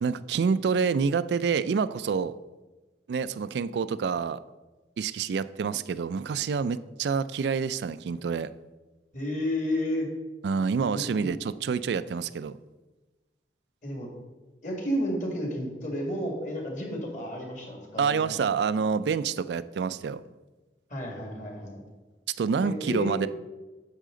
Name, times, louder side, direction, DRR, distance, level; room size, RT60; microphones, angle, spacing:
voice 1, 0.0-2.3 3.1-4.4 5.0-8.5 10.4-12.6 18.0-20.2 22.4-23.3, right 5 dB, 75° right, 15 dB, 0.3 m, -27 dB
voice 2, 9.1-10.1 10.9-11.4 13.8-14.1 14.6-18.4 20.9-21.8 22.6-23.3, equal, 45° left, 1 dB, 2.0 m, -32 dB
9.9 x 6.5 x 3.8 m, 1.2 s
head